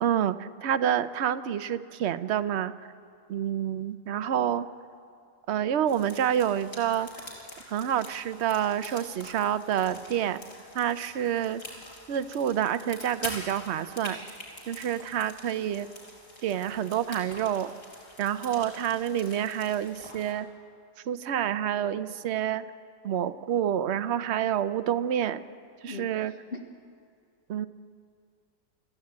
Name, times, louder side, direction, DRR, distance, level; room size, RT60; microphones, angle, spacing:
voice 1, 0.0-2.7 3.3-4.6 5.5-7.1 7.7-10.4 10.7-11.6 12.1-14.2 14.7-15.9 16.4-17.7 18.2-20.5 21.1-22.6 23.0-25.4 25.8-26.3 27.5-27.7, right 10 dB, 60° right, 13 dB, 0.9 m, -28 dB
sound 1, 5.9-20.3, left 1 dB, 65° left, 5.6 m, -45 dB
voice 2, 25.9-26.6, left 3 dB, 45° left, -1 dB, 1.6 m, -40 dB
29.5 x 14.0 x 8.6 m, 2.3 s
omnidirectional pair, 1.4 m